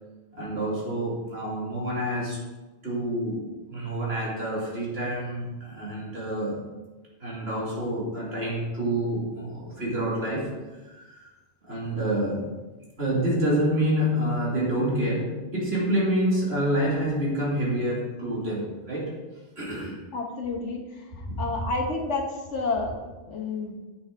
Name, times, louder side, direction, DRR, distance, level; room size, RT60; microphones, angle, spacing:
voice 1, 0.4-2.4 2.8-6.6 7.2-10.5 10.9-11.3 11.6-12.5 13.0-19.1 19.6-20.0 21.3-21.6, right 1 dB, 60° right, -5 dB, 2.9 m, -27 dB
voice 2, 20.1-20.8 21.4-22.2 22.5-23.7, left 3 dB, 85° left, 0 dB, 1.7 m, -29 dB
8.8 x 6.0 x 4.5 m, 1.2 s
omnidirectional pair, 1.2 m